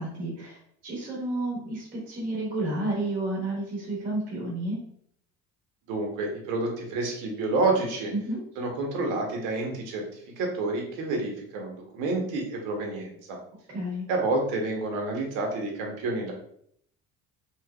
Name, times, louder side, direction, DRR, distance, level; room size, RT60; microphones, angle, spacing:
voice 1, 0.0-4.8 8.1-8.4 13.7-14.1, right 1 dB, 30° right, -4 dB, 0.9 m, -31 dB
voice 2, 5.9-8.1 8.6-10.0 10.4-13.4 14.1-16.3, right 2 dB, 80° right, 1 dB, 0.9 m, -29 dB
3.2 x 2.9 x 2.3 m, 0.66 s
cardioid pair, 180°, 31 cm